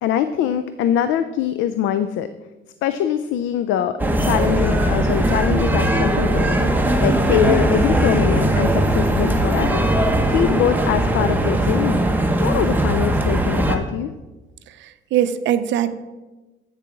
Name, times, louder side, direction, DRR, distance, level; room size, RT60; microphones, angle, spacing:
voice 1, 0.0-2.3 2.8-6.6 7.0-9.9 10.3-12.0 12.4-14.1, left 10 dB, 75° left, 11 dB, 0.4 m, -23 dB
sound 1, 4.0-13.8, right 1 dB, 10° right, 0.9 m, -19 dB
voice 2, 14.7-16.0, right 10 dB, 65° right, 12 dB, 0.5 m, -22 dB
8.2 x 6.7 x 3.7 m, 1.2 s
cardioid pair, 95°, 20 cm